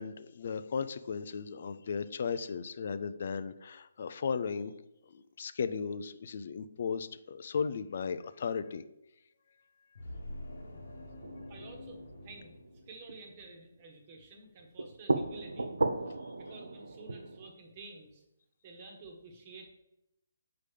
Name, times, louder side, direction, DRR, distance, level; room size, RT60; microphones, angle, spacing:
voice 1, 0.0-4.8 5.1-8.8, left 6 dB, 55° left, 12 dB, 0.3 m, -36 dB
sound 1, 10.0-13.4, left 1 dB, 70° left, 1.1 m, -46 dB
sound 2, 11.2-13.2 14.6-17.5, right 2 dB, 80° right, 0.4 m, -36 dB
voice 2, 11.5-12.5 12.9-15.7 16.4-18.2 18.6-19.7, right 3 dB, 35° right, 2 dB, 1.2 m, -51 dB
6.7 x 4.9 x 3.3 m, 0.86 s
figure-of-eight pair, 145°, 0 cm